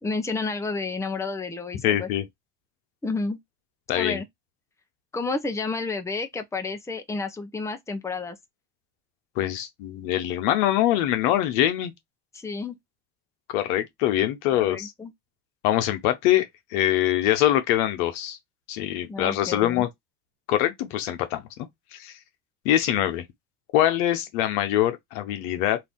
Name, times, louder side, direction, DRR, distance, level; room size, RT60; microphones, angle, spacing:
voice 1, 0.0-2.1 3.0-3.4 3.9-4.3 5.1-8.4 12.3-12.8 14.5-15.1 19.1-19.8 23.9-24.0, left 3 dB, 5° left, 0.6 m, -30 dB
voice 2, 1.8-2.2 3.9-4.2 9.4-11.9 13.5-14.9 15.6-18.4 18.7-19.9 20.5-21.5 21.9-22.1 22.6-23.2 23.7-25.8, left 13 dB, 85° left, 0.9 m, -23 dB
2.8 x 2.5 x 3.5 m
supercardioid pair, 80°, 43 cm